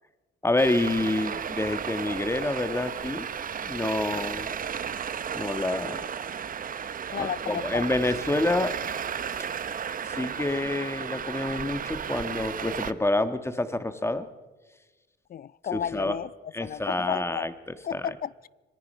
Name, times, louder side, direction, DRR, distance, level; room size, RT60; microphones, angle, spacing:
voice 1, 0.4-3.3 3.6-4.5 5.3-6.0 7.2-8.7 10.0-14.3 15.7-16.2 16.5-18.0, left 2 dB, 15° left, 10 dB, 1.6 m, -28 dB
Traffic noise roadway noise, 0.6-12.9, right 7 dB, 45° right, 0.9 m, -34 dB
voice 2, 7.1-7.9 15.3-16.3 16.6-17.4 17.8-18.5, left 9 dB, 45° left, 22 dB, 0.5 m, -33 dB
25.5 x 18.5 x 5.6 m, 1.2 s
cardioid pair, 90°, 20 cm